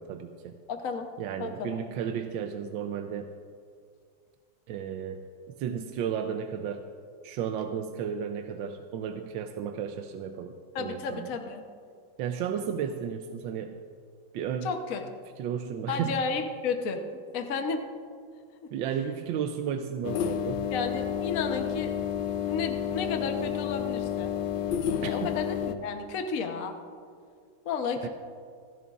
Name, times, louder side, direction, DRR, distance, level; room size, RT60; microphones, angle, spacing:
voice 1, 0.0-0.6 1.2-3.3 4.7-5.2 5.6-6.8 7.2-11.3 12.2-13.7 14.3-14.7 15.4-16.2 18.7-20.7 25.0-25.3 28.0-28.1, right 8 dB, 80° right, 6 dB, 1.4 m, -33 dB
voice 2, 0.7-1.1 1.4-1.8 10.7-11.6 14.6-15.0 15.9-17.0 17.3-17.8 18.6-18.7 20.7-21.9 22.4-24.3 25.0-26.7 27.6-28.1, left 5 dB, 55° left, 5 dB, 1.1 m, -32 dB
sound 1, 20.0-25.7, left 9 dB, 75° left, 1.4 m, -30 dB
29.0 x 11.0 x 2.4 m, 2.2 s
omnidirectional pair, 2.1 m